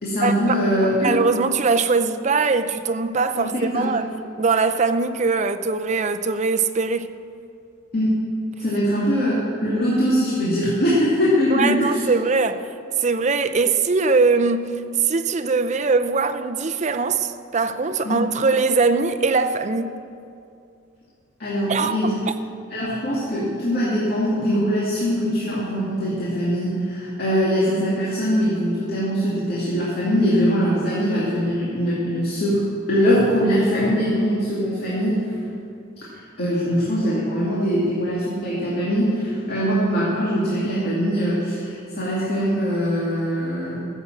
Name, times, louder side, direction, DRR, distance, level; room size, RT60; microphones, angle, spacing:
voice 1, 0.0-1.1 3.4-3.9 7.9-8.1 8.6-12.0 18.0-18.2 21.4-22.2 22.7-32.6 32.9-35.4 36.4-43.8, equal, 50° left, 2.3 m, -22 dB
voice 2, 1.0-7.2 11.5-12.7 13.0-20.0 21.7-22.1, right 4 dB, 35° right, 0.5 m, -21 dB
14.5 x 7.2 x 7.5 m
head